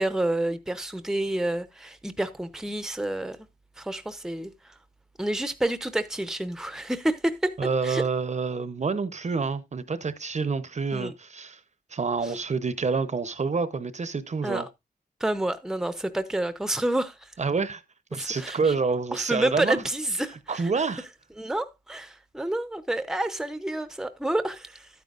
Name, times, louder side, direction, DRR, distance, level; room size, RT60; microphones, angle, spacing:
voice 1, 0.0-3.4 3.8-4.7 5.2-7.5 7.8-8.0 10.9-11.1 12.2-12.3 14.4-14.7 15.2-17.3 18.1-18.7 19.1-20.6 21.4-24.9, right 1 dB, 5° right, 0.7 m, -29 dB
voice 2, 7.6-11.6 11.9-14.7 17.4-17.8 18.1-19.8 20.5-21.0, right 4 dB, 45° right, 0.8 m, -28 dB
12.5 x 9.3 x 2.5 m
wide cardioid pair, 145°, 17 cm